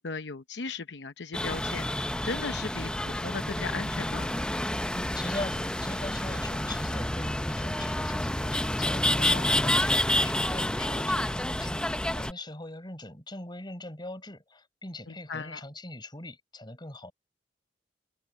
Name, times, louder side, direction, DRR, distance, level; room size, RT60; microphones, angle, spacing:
voice 1, 0.0-4.3 9.2-9.7 15.1-15.6, left 4 dB, 80° left, 0.8 m, -37 dB
sound 1, 1.3-12.3, left 1 dB, 5° left, 0.6 m, -29 dB
voice 2, 4.9-17.1, left 2 dB, 25° left, 5.8 m, -41 dB
head